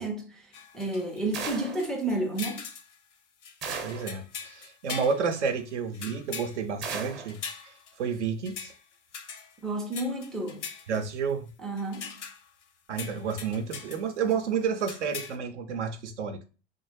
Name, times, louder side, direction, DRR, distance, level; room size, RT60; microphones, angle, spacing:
voice 1, 0.0-2.6 9.6-10.7 11.6-12.2, right 2 dB, ahead, 0.3 m, -31 dB
sound 1, 0.5-1.5 1.8-3.0 3.4-8.2 8.4-8.8 9.1-11.3 11.8-12.6 13.0-14.0 14.3-14.4 14.8-15.3, left 6 dB, 75° left, 0.6 m, -41 dB
sound 2, 1.3-1.9 3.6-4.1 6.8-7.3, right 5 dB, 30° right, 0.7 m, -35 dB
voice 2, 3.8-7.4 8.0-8.7 10.9-11.5 12.9-16.4, right 6 dB, 70° right, 0.6 m, -30 dB
3.2 x 2.0 x 3.2 m
figure-of-eight pair, 75°, 36 cm